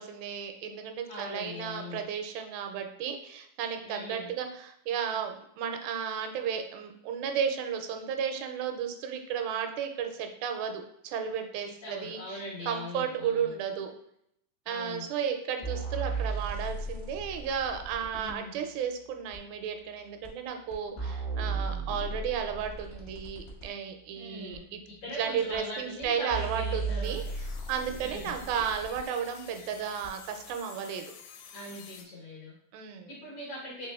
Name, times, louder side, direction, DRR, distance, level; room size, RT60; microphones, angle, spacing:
voice 1, 0.0-13.9 14.7-24.8 25.2-27.2 27.7-31.1 32.7-33.2, right 7 dB, 85° right, 5 dB, 2.3 m, -33 dB
voice 2, 1.1-2.0 3.8-4.3 11.6-13.5 14.7-15.1 18.2-18.7 24.1-24.7 25.0-27.2 28.0-28.4 31.5-32.5 33.1-33.9, left 1 dB, 70° left, -4 dB, 1.8 m, -41 dB
sound 1, 15.6-18.4 19.3-19.4 20.2-20.3 20.7-23.7 24.5-24.6 25.5-25.6 26.0-26.1 26.3-29.0 30.0-30.1, right 4 dB, 45° left, 0.8 m, -35 dB
sound 2, 27.0-32.1, left 7 dB, 85° left, 2.3 m, -50 dB
5.4 x 3.5 x 2.3 m, 0.72 s
omnidirectional pair, 4.1 m